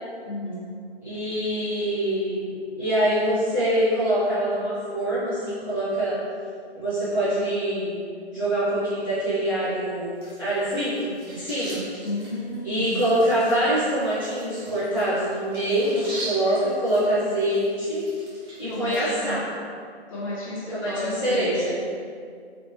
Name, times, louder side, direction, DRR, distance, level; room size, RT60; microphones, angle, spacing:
voice 1, 0.2-0.8 12.0-13.0 18.7-19.3 20.1-21.7, left 1 dB, 30° left, -6 dB, 0.9 m, -32 dB
voice 2, 1.0-6.2 6.7-7.9 8.3-10.1 10.4-11.8 12.6-18.0 18.6-19.4 20.7-21.7, right 1 dB, 5° right, -19 dB, 0.4 m, -24 dB
sound 1, 10.2-19.0, right 1 dB, 25° right, 1.0 m, -41 dB
4.1 x 3.0 x 3.1 m, 2.2 s
figure-of-eight pair, 135°, 33 cm